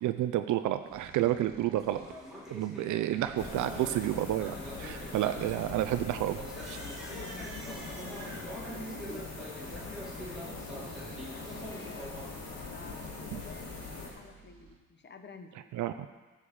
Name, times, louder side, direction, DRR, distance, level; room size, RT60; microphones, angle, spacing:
voice 1, 0.0-2.0 2.5-6.8 13.3-13.4 15.7-16.1, right 13 dB, 75° right, 10 dB, 0.5 m, -30 dB
sound 1, 0.7-2.2 2.9-4.3 5.0-6.6 7.0-9.0 10.2-12.0 12.7-13.2 13.7-14.8, right 4 dB, 45° right, 1.4 m, -55 dB
sound 2, 1.7-12.3, equal, ahead, 3.1 m, -45 dB
sound 3, 3.4-14.1, left 3 dB, 55° left, 2.9 m, -42 dB
voice 2, 7.0-9.3 9.6-12.2 12.7-15.8, left 4 dB, 35° left, 6 dB, 1.1 m, -51 dB
11.0 x 5.0 x 7.1 m, 1.3 s
cardioid pair, 90°, 30 cm